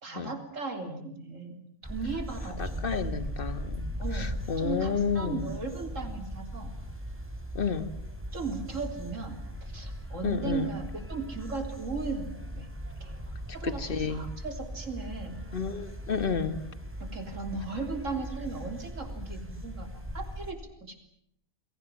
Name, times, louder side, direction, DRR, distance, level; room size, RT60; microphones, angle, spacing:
voice 1, 0.0-3.1 4.0-4.3 4.6-6.8 8.3-12.7 13.0-15.4 17.0-21.1, right 4 dB, 55° right, 6 dB, 4.0 m, -37 dB
sound 1, 1.8-20.5, equal, 10° right, 4.5 m, -39 dB
voice 2, 2.6-5.5 7.6-7.9 10.2-10.7 13.6-14.3 15.5-16.6, left 5 dB, 35° left, 12 dB, 1.7 m, -31 dB
29.5 x 22.0 x 7.3 m, 0.73 s
omnidirectional pair, 1.6 m